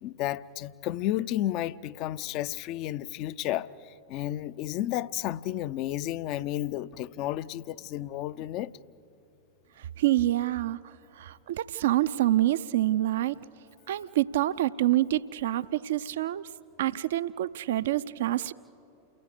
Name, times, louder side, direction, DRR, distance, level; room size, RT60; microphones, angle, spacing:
voice 1, 0.0-3.7 4.1-8.7, left 13 dB, 40° left, 0.5 m, -32 dB
voice 2, 10.0-10.8 11.2-13.4 13.9-16.5 16.8-18.5, right 14 dB, 60° right, 0.5 m, -26 dB
29.0 x 18.0 x 8.3 m
figure-of-eight pair, 90°, 0 cm